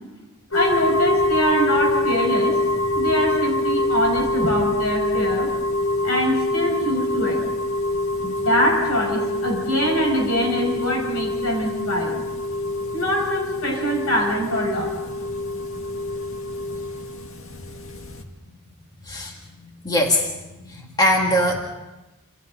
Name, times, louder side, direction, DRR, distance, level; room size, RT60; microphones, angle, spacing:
voice 1, 0.5-2.6 2.9-5.5 6.0-7.4 8.2-12.2 12.9-14.9, equal, 80° left, 1 dB, 6.7 m, -23 dB
sound 1, 0.5-18.2, left 1 dB, 65° left, 2.0 m, -25 dB
voice 2, 19.8-20.3 20.6-21.7, left 1 dB, 20° left, 0 dB, 2.2 m, -21 dB
28.5 x 28.0 x 4.0 m, 1.0 s
head